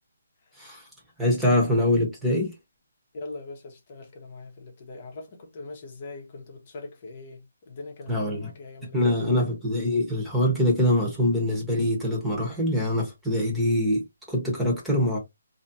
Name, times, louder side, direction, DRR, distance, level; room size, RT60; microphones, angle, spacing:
voice 1, 0.6-0.9 1.2-2.5 8.1-8.5 8.9-15.2, left 1 dB, 5° right, 1.1 m, -24 dB
voice 2, 3.1-9.5, left 3 dB, 40° left, 0.9 m, -42 dB
3.1 x 2.8 x 2.6 m
hypercardioid pair, 160°, 0 cm